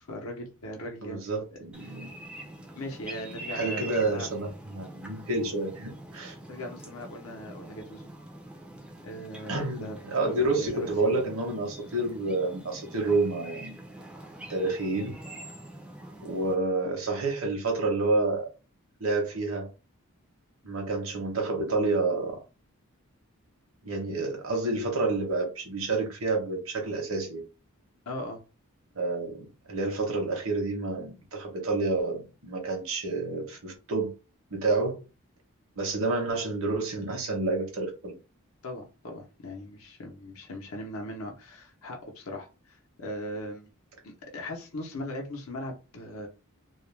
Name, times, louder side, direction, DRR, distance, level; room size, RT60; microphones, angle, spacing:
voice 1, 0.1-1.2 1.9-2.0 2.8-4.3 6.5-8.1 9.0-10.0 10.2-11.1 28.1-28.4 38.6-43.7 44.0-46.3, left 1 dB, 70° left, 0.7 m, -39 dB
voice 2, 1.0-2.1 3.5-6.4 9.5-13.8 14.5-15.1 16.2-18.5 19.0-19.7 20.6-22.4 23.8-27.4 29.0-34.1 34.5-35.0 35.8-38.1, right 3 dB, 65° right, 0.8 m, -29 dB
sound 1, 1.7-16.5, right 1 dB, 5° right, 0.4 m, -44 dB
2.3 x 2.1 x 3.1 m
head